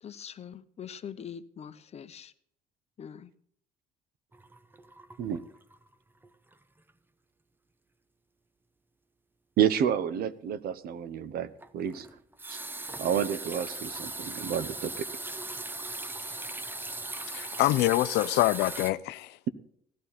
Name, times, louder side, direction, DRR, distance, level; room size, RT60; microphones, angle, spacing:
voice 1, 0.0-2.3 3.0-3.3, left 8 dB, 40° left, 0.9 m, -43 dB
sound 1, 4.3-5.9 6.2-6.5 6.9-7.0 11.6-18.9, right 2 dB, 10° right, 0.7 m, -39 dB
voice 2, 9.6-11.5 11.7-12.1 12.5-12.6 13.0-15.1, right 9 dB, 65° right, 1.0 m, -29 dB
voice 3, 17.3-19.4, left 17 dB, 85° left, 0.6 m, -25 dB
17.0 x 12.5 x 4.2 m
cardioid pair, 110°, 17 cm